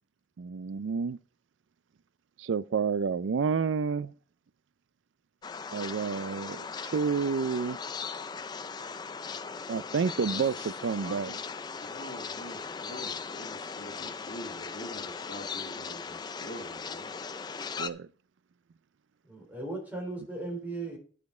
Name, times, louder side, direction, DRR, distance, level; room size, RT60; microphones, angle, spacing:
voice 1, 0.4-1.2 2.4-4.1 5.7-7.8 9.7-11.3 17.8-18.1, right 5 dB, 80° right, 0.4 m, -29 dB
sound 1, 5.4-17.9, left 5 dB, 20° left, 0.3 m, -38 dB
voice 2, 11.0-11.3 11.9-17.1, left 1 dB, 55° left, 1.6 m, -44 dB
voice 3, 19.2-21.0, right 2 dB, 10° right, 3.3 m, -37 dB
10.5 x 5.1 x 4.8 m
head